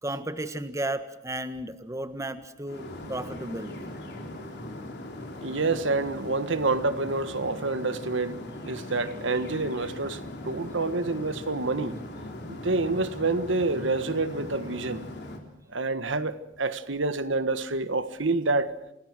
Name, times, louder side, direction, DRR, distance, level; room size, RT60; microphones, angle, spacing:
voice 1, 0.0-3.9, right 1 dB, 15° right, 1.4 m, -34 dB
sound 1, 2.7-15.4, left 1 dB, 55° left, 3.8 m, -40 dB
voice 2, 5.4-8.4 8.7-12.0 12.5-15.0 15.7-18.7, right 3 dB, 70° right, 1.5 m, -28 dB
28.5 x 19.5 x 6.2 m
head